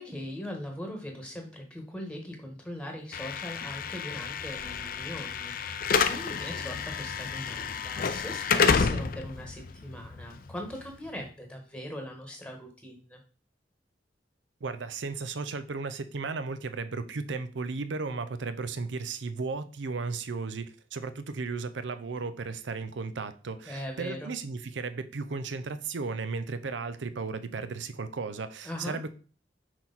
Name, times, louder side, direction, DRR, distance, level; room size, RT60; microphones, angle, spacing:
voice 1, 0.0-13.2 23.7-24.3 28.6-29.0, left 1 dB, 5° left, 1.2 m, -40 dB
Slam / Alarm, 3.1-11.2, left 5 dB, 50° left, 0.4 m, -30 dB
voice 2, 14.6-29.1, right 4 dB, 85° right, 0.6 m, -35 dB
6.2 x 4.3 x 4.0 m
head